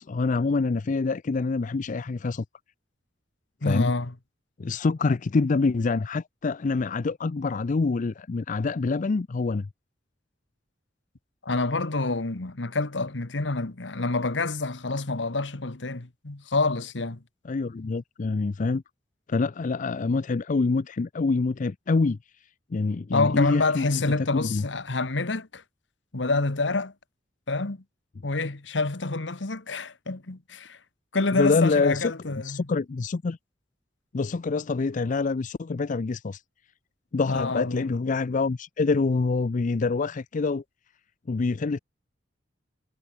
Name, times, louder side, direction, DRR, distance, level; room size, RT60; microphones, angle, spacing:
voice 1, 0.0-2.4 3.6-3.9 4.6-9.7 17.4-18.8 19.3-22.2 22.7-24.0 24.3-24.6 31.4-32.1 32.4-33.4 34.1-36.4 37.1-40.6 41.3-41.8, left 4 dB, 45° left, 0.5 m, -26 dB
voice 2, 3.6-4.1 11.4-17.2 23.1-25.6 26.1-26.9 27.5-27.8 28.2-30.8 31.1-32.6 37.3-37.9, left 3 dB, 75° left, 1.4 m, -27 dB
head